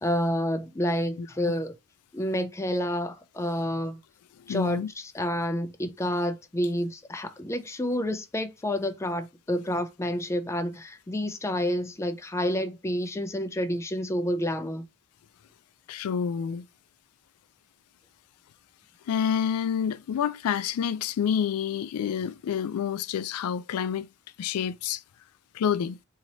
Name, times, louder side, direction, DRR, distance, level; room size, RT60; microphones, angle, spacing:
voice 1, 0.0-1.7 2.1-4.0 4.5-14.9, equal, 15° left, 0.4 m, -29 dB
voice 2, 1.2-1.5 4.4-4.9 15.9-16.6 19.1-24.1 24.4-25.0 25.5-26.0, left 8 dB, 90° left, 0.3 m, -28 dB
2.9 x 2.8 x 4.0 m
head